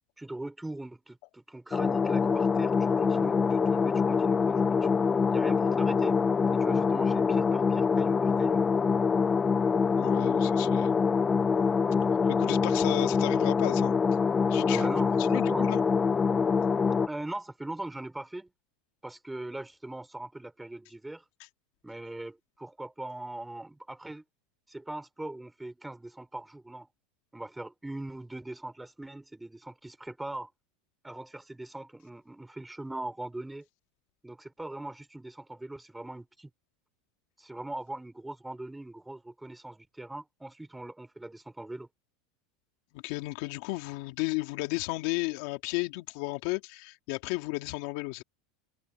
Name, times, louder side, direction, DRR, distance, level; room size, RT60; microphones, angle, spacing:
voice 1, 0.2-4.9 5.3-6.2 6.5-8.6 12.2-12.7 14.6-15.7 17.1-18.5 19.0-21.2 21.8-24.2 24.7-26.9 27.3-30.5 31.0-33.6 34.2-36.5 37.4-41.9, right 2 dB, 5° right, 5.0 m, -40 dB
sound 1, 1.7-17.1, left 5 dB, 20° left, 0.6 m, -25 dB
voice 2, 10.0-11.1 12.3-14.0 14.5-14.9 15.2-15.8 42.9-48.2, left 23 dB, 65° left, 2.3 m, -34 dB
open air
supercardioid pair, 120°, 0 cm